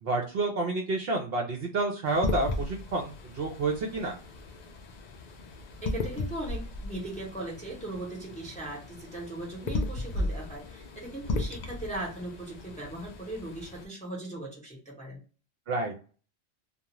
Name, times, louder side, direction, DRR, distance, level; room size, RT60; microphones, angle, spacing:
voice 1, 0.0-4.2 15.7-15.9, right 2 dB, 60° right, 1 dB, 0.7 m, -29 dB
sound 1, 2.0-13.8, left 2 dB, 75° left, 0.4 m, -36 dB
voice 2, 5.8-15.2, right 1 dB, 5° left, -3 dB, 0.7 m, -39 dB
2.4 x 2.3 x 2.9 m, 0.36 s
omnidirectional pair, 1.3 m